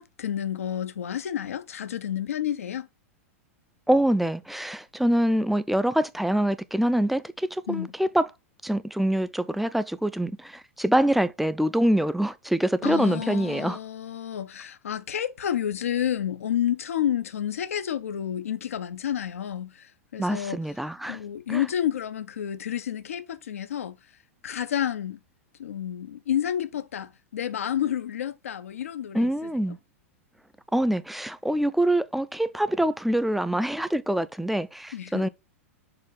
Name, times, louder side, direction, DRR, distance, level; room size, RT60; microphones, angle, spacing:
voice 1, 0.0-2.9 7.7-7.9 12.8-20.6 21.1-24.0 24.4-25.2 25.6-29.3 34.9-35.3, left 10 dB, 70° left, 0.6 m, -30 dB
voice 2, 3.9-8.3 8.6-13.8 20.2-21.2 21.5-21.6 29.1-29.8 30.7-35.3, right 1 dB, ahead, 0.5 m, -25 dB
6.8 x 2.6 x 5.6 m
figure-of-eight pair, 95°, 8 cm